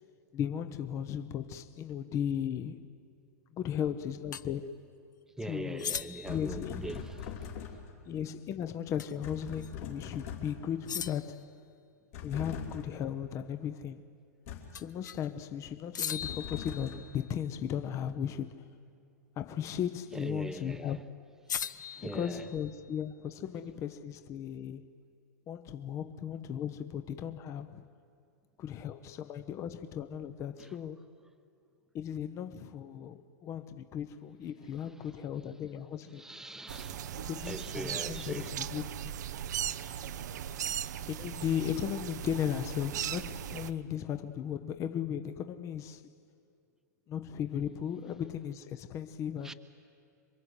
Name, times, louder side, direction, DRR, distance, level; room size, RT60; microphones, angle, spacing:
voice 1, 0.3-2.9 3.5-4.9 5.4-5.9 6.3-7.0 8.0-11.5 12.2-14.0 14.7-18.6 19.4-21.0 22.0-24.9 25.5-27.8 28.6-31.0 31.9-36.2 37.2-39.2 40.7-40.8 41.1-46.1 47.1-49.5, left 9 dB, 30° left, 1.0 m, -36 dB
sound 1, 4.3-4.5 5.8-6.4 9.0-9.2 9.6-9.7 10.9-11.5 14.7-15.3 15.9-17.3 19.6-20.0 21.5-22.9, left 8 dB, 90° left, 0.7 m, -39 dB
voice 2, 5.4-7.5 20.1-21.0 21.7-22.5 30.6-30.8 36.1-38.5 49.4-49.5, right 1 dB, 5° right, 1.0 m, -42 dB
sound 2, 6.2-8.0 9.2-10.8 12.1-13.0 14.5-14.9 16.2-17.2, left 7 dB, 55° left, 3.0 m, -42 dB
sound 3, 36.7-43.7, right 10 dB, 70° right, 0.8 m, -38 dB
27.0 x 23.0 x 8.3 m
hypercardioid pair, 125°, 10 cm